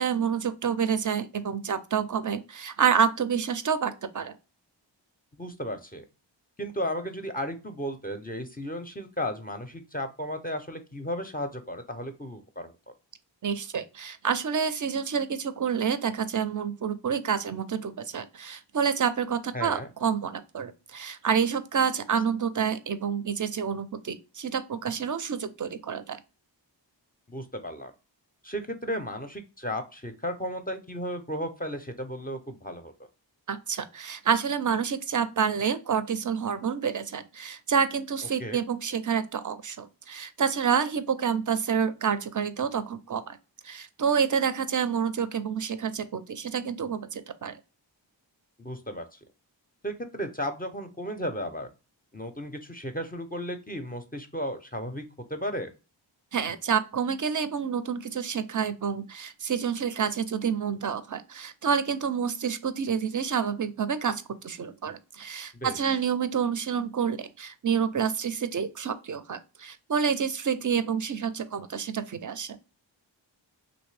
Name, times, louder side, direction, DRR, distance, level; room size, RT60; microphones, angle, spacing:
voice 1, 0.0-4.3 13.4-26.2 33.5-43.4 43.6-47.6 56.3-72.6, right 7 dB, 45° right, 0.4 m, -28 dB
voice 2, 5.4-6.0 6.6-12.7 19.5-19.9 27.3-27.9 28.4-32.9 38.4-38.6 48.6-49.2 49.8-51.7 52.1-55.7 65.5-66.0, equal, 20° left, 0.5 m, -34 dB
3.1 x 2.6 x 3.1 m
wide cardioid pair, 50°, 46 cm